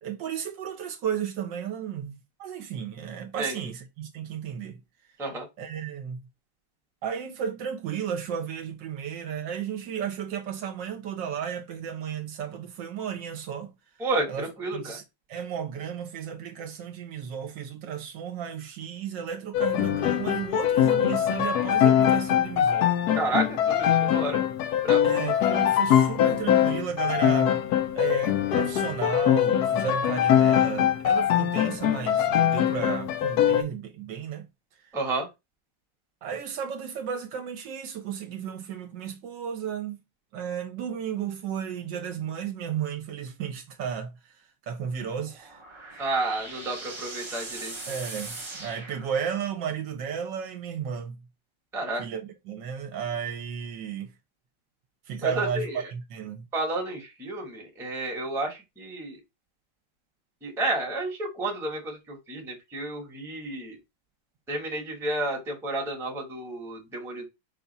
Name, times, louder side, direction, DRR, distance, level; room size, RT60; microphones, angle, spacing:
voice 1, 0.0-4.8 5.6-6.2 7.0-13.7 14.3-15.0 15.3-22.9 25.0-34.5 34.8-35.0 36.2-40.0 40.3-45.6 47.9-51.2 52.0-54.1 55.1-56.5, right 8 dB, 70° right, 1.3 m, -34 dB
voice 2, 14.0-15.0 23.1-24.4 24.8-25.0 34.9-35.3 46.0-47.9 51.7-52.0 55.2-55.8 56.5-59.2 60.4-63.8 64.5-67.3, right 2 dB, ahead, 0.8 m, -31 dB
sound 1, 19.5-33.6, left 10 dB, 75° left, 0.9 m, -23 dB
sound 2, 45.2-49.7, right 2 dB, 30° right, 0.5 m, -40 dB
5.4 x 2.4 x 4.0 m
omnidirectional pair, 2.2 m